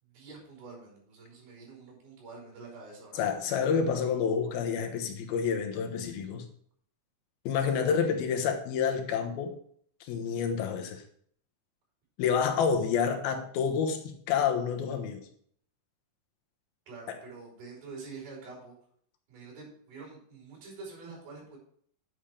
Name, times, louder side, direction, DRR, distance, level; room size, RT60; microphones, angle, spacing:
voice 1, 0.0-3.4 8.0-8.1 16.9-18.8 19.3-21.6, right 4 dB, 80° right, -1 dB, 7.2 m, -47 dB
voice 2, 3.1-6.5 7.5-9.6 10.0-11.0 12.2-15.2 17.1-17.2, left 6 dB, 90° left, 5 dB, 3.1 m, -29 dB
11.0 x 7.3 x 4.9 m, 0.62 s
omnidirectional pair, 4.2 m